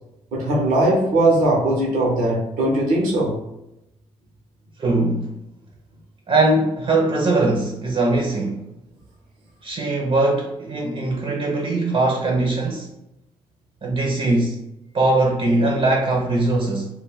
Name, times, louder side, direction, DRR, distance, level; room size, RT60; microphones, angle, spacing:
voice 1, 0.3-3.4, right 1 dB, 85° right, 0.7 m, -19 dB
voice 2, 4.8-5.4 6.3-8.6 9.6-12.9 13.8-14.6 14.9-16.9, right 2 dB, 45° right, 0.6 m, -21 dB
2.2 x 2.2 x 3.4 m
supercardioid pair, 50°, 14 cm